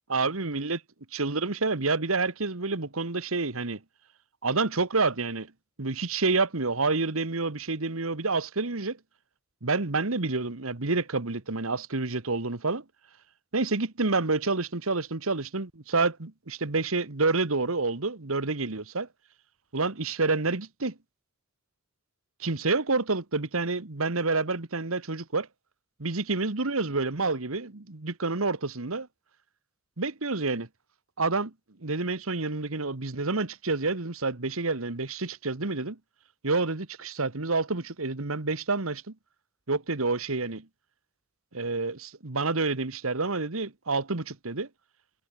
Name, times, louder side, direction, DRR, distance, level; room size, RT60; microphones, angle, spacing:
voice 1, 0.1-0.8 1.1-3.8 4.4-5.5 5.8-9.0 9.6-12.8 13.5-19.1 19.7-20.9 22.4-25.5 26.0-29.1 30.0-30.7 31.2-31.5 31.8-36.0 36.4-39.1 39.7-40.7 41.5-44.7, right 3 dB, 80° right, 1.6 m, -28 dB
head